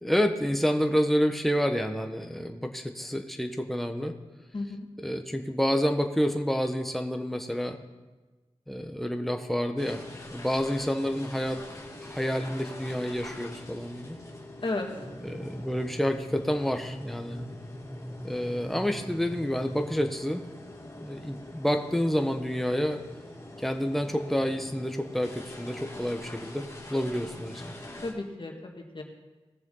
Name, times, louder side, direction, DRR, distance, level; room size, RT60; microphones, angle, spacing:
voice 1, 0.0-4.1 5.0-7.8 8.7-10.0 10.3-11.6 12.0-14.2 15.2-17.4 18.2-20.4 21.0-23.0 23.6-27.7, equal, ahead, 5 dB, 1.2 m, -29 dB
voice 2, 4.5-4.9 14.6-14.9 28.0-29.0, left 2 dB, 50° left, 1 dB, 1.9 m, -33 dB
sound 1, 9.8-28.1, left 1 dB, 30° left, 2.2 m, -45 dB
sound 2, 15.0-20.2, equal, 55° right, 3.1 m, -42 dB
18.5 x 7.1 x 3.9 m, 1.2 s
cardioid pair, 55°, 10 cm